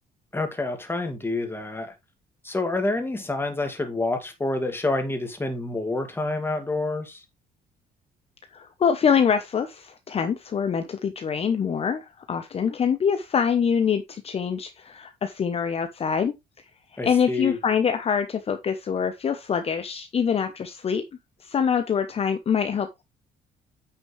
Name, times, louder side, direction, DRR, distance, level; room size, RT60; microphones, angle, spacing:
voice 1, 0.3-1.9 2.4-7.2 17.0-17.6, left 2 dB, 15° left, 2.2 m, -28 dB
voice 2, 8.5-16.3 17.0-21.0 21.4-23.0, left 7 dB, 35° left, 0.9 m, -25 dB
9.4 x 5.9 x 3.3 m
cardioid pair, 110°, 17 cm